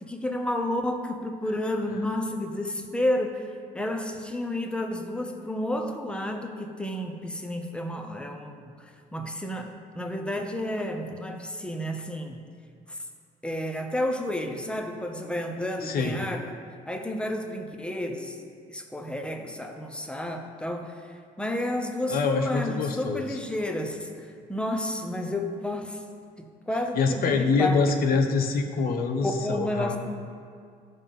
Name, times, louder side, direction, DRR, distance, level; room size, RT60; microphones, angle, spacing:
voice 1, 0.0-12.4 12.9-13.0 13.4-16.5 16.9-18.4 18.7-21.0 21.4-26.0 26.4-27.8 29.2-30.0, left 1 dB, 5° left, 4 dB, 0.8 m, -31 dB
voice 2, 15.8-16.2 22.1-23.4 26.9-30.0, left 4 dB, 60° left, 4 dB, 1.0 m, -25 dB
14.0 x 5.4 x 3.7 m, 2.2 s
cardioid pair, 110°, 17 cm